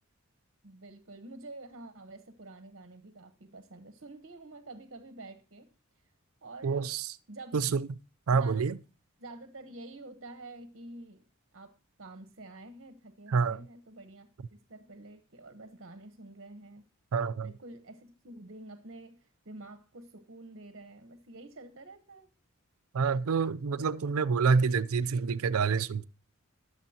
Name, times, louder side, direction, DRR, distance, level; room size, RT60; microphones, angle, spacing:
voice 1, 0.6-5.7 6.4-6.9 7.3-7.6 8.3-8.7 9.2-11.2 11.5-16.8 17.4-22.3, right 2 dB, 60° right, 1.1 m, -48 dB
voice 2, 6.6-7.1 7.5-8.0 8.3-8.8 13.3-13.6 17.1-17.5 22.9-26.0, right 5 dB, 90° right, 0.5 m, -27 dB
21.0 x 7.1 x 2.9 m
head